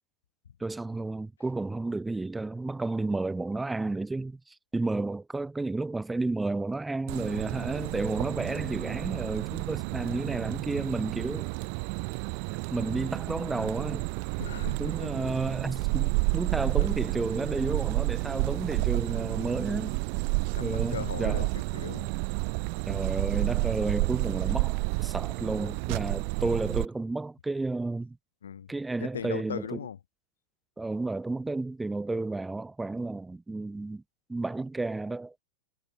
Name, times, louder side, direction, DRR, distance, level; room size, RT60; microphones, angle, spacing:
voice 1, 0.6-11.5 12.7-14.1 14.8-20.0 20.6-21.5 22.9-28.2 28.7-29.8 30.8-34.0 34.3-35.3, right 2 dB, 10° right, 5.1 m, -32 dB
sound 1, 7.1-26.9, right 40 dB or more, 45° right, 2.4 m, -30 dB
voice 2, 14.4-15.1 16.8-17.0 19.3-19.7 20.5-22.1 28.4-28.7 29.0-30.0, left 8 dB, 65° left, 7.8 m, -39 dB
figure-of-eight pair, 90°, 0 cm